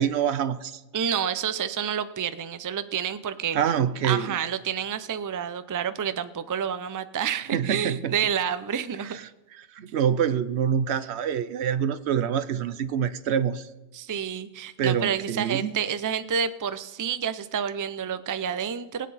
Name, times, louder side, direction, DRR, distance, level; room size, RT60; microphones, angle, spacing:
voice 1, 0.0-0.8 3.5-4.4 7.5-8.1 9.0-9.2 9.6-13.7 14.8-15.8, right 8 dB, 90° right, 14 dB, 1.0 m, -26 dB
voice 2, 0.9-3.6 4.0-9.2 13.9-19.1, right 8 dB, 30° right, 13 dB, 0.3 m, -29 dB
21.5 x 8.3 x 4.1 m, 1.1 s
omnidirectional pair, 1.1 m